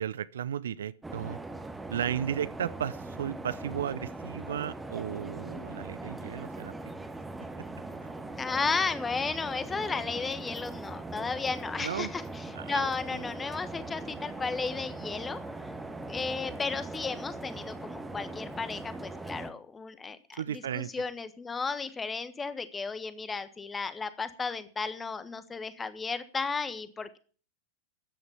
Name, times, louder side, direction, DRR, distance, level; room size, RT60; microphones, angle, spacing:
voice 1, 0.0-1.4 1.9-6.7 11.8-12.1 12.6-13.2 20.3-20.9, right 9 dB, 65° right, 18 dB, 0.6 m, -34 dB
sound 1, 1.0-19.5, right 2 dB, 10° right, 1.5 m, -40 dB
voice 2, 8.4-15.4 16.1-27.2, left 4 dB, 15° left, 13 dB, 1.4 m, -34 dB
13.5 x 9.5 x 7.0 m, 0.42 s
figure-of-eight pair, 90°, 0 cm